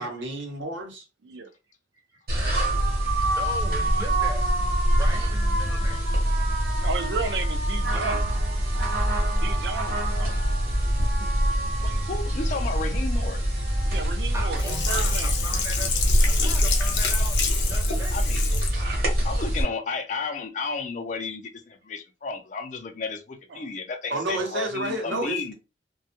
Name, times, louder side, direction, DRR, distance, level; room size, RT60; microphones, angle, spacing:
voice 1, 0.0-1.0 24.1-25.5, right 2 dB, 90° right, 0.8 m, -30 dB
voice 2, 2.1-2.5 3.0-4.5 5.0-6.0 14.3-16.0 16.2-17.4 17.7-18.2, right 2 dB, 15° right, 0.6 m, -38 dB
sound 1, 2.3-19.6, right 1 dB, 55° right, 0.8 m, -24 dB
voice 3, 6.8-8.3 9.4-10.4 13.9-15.3 23.5-23.7, right 5 dB, 70° right, 0.4 m, -33 dB
voice 4, 11.8-13.6 17.1-17.3 18.1-18.7 19.2-25.5, left 4 dB, 40° left, 0.4 m, -33 dB
Sink (filling or washing), 14.6-18.8 19.2-19.3, left 6 dB, 80° left, 0.6 m, -29 dB
2.2 x 2.1 x 2.8 m
head